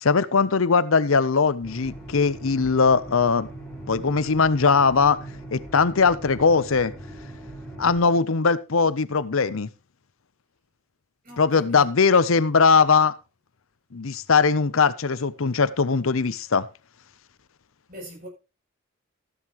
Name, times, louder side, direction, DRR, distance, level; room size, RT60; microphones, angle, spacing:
voice 1, 0.0-3.5 3.9-5.2 5.5-6.9 7.8-9.7 11.4-13.1 13.9-16.7, left 5 dB, 80° left, 0.8 m, -20 dB
sound 1, 1.6-8.0, right 1 dB, 5° left, 4.7 m, -40 dB
voice 2, 11.2-11.9 12.2-12.4 17.9-18.3, equal, 45° right, 7.8 m, -43 dB
14.5 x 11.0 x 3.1 m
head